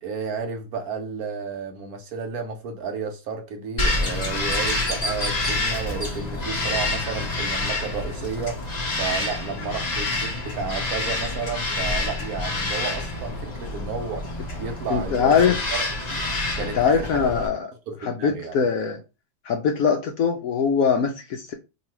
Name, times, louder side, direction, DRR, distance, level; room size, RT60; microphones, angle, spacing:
voice 1, 0.0-14.3 14.6-16.2 16.6-17.4 17.9-18.6, right 5 dB, 65° right, 1.0 m, -32 dB
Bird vocalization bird call bird song, 3.8-17.5, left 2 dB, 35° left, 0.7 m, -27 dB
voice 2, 14.9-15.6 16.6-17.7 18.0-19.0 19.4-21.5, left 6 dB, 70° left, 0.9 m, -22 dB
2.9 x 2.7 x 4.4 m
omnidirectional pair, 1.9 m